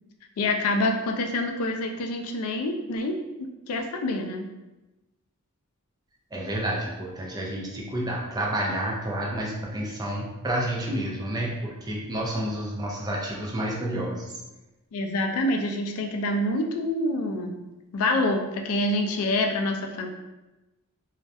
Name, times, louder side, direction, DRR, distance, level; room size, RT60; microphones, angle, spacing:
voice 1, 0.4-3.1 3.7-4.5 14.9-17.6 17.9-20.1, left 1 dB, 70° left, 4 dB, 0.3 m, -26 dB
voice 2, 6.3-14.3, right 1 dB, 20° right, -3 dB, 0.4 m, -30 dB
2.2 x 2.1 x 2.6 m, 1.0 s
head